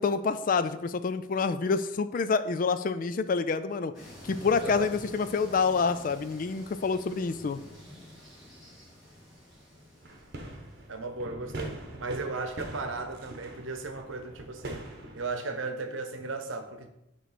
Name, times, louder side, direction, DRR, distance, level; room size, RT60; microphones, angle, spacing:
voice 1, 0.0-3.9 4.2-7.6, left 5 dB, 45° left, 0.3 m, -27 dB
sound 1, 3.9-10.9, left 1 dB, ahead, 2.6 m, -48 dB
voice 2, 4.6-4.9 10.9-14.8 15.1-16.9, right 3 dB, 90° right, 0.8 m, -36 dB
sound 2, 10.0-15.3, right 1 dB, 55° right, 1.0 m, -43 dB
6.8 x 3.1 x 5.9 m
head